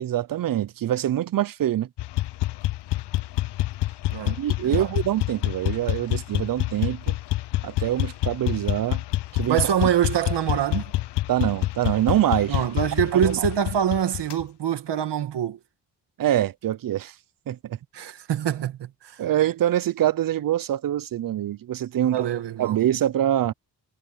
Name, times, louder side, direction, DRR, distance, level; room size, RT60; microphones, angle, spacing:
voice 1, 0.0-1.9 4.2-7.2 7.6-9.0 9.3-9.6 11.3-12.6 13.1-13.4 16.2-17.1 17.5-17.8 19.2-22.3 22.6-23.5, right 12 dB, 55° right, 0.6 m, -24 dB
sound 1, 2.0-14.4, left 16 dB, 75° left, 0.6 m, -27 dB
voice 2, 4.1-4.9 9.5-10.9 12.5-15.6 17.9-19.2 22.1-22.8, right 9 dB, 75° right, 2.0 m, -25 dB
wide cardioid pair, 120°, 42 cm